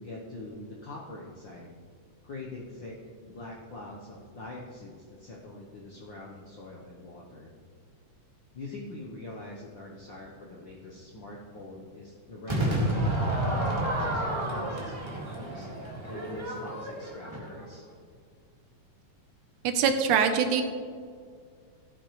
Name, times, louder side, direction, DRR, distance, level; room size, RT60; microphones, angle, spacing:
voice 1, 0.0-1.7 2.2-7.5 8.5-15.7 16.1-17.9, left 2 dB, 65° left, -3 dB, 1.1 m, -43 dB
Crowd / Fireworks, 12.5-17.7, right 1 dB, 10° right, 1.4 m, -30 dB
voice 2, 19.6-20.6, right 6 dB, 80° right, 7 dB, 2.2 m, -23 dB
15.5 x 8.9 x 3.1 m, 2.1 s
omnidirectional pair, 3.5 m